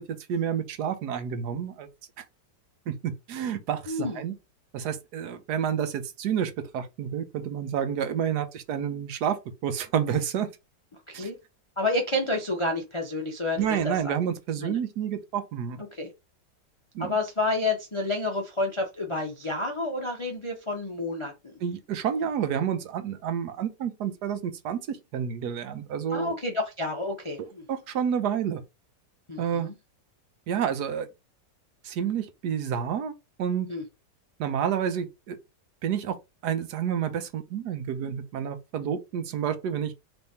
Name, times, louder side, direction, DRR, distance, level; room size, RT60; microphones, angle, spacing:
voice 1, 0.3-1.9 2.9-4.3 4.7-10.5 11.1-11.3 13.6-15.8 16.9-17.2 21.6-26.3 27.7-28.6 29.4-29.7 30.5-31.1 31.8-33.1 33.4-33.7 34.4-35.4 35.8-36.2 36.4-39.9, right 8 dB, 70° right, 1.2 m, -29 dB
voice 2, 3.9-4.2 11.1-11.4 11.8-14.1 14.6-14.8 15.9-16.1 17.0-21.5 26.1-27.6 29.3-29.7 33.7-33.8, left 2 dB, 40° left, 0.4 m, -29 dB
3.5 x 3.4 x 4.1 m
omnidirectional pair, 1.9 m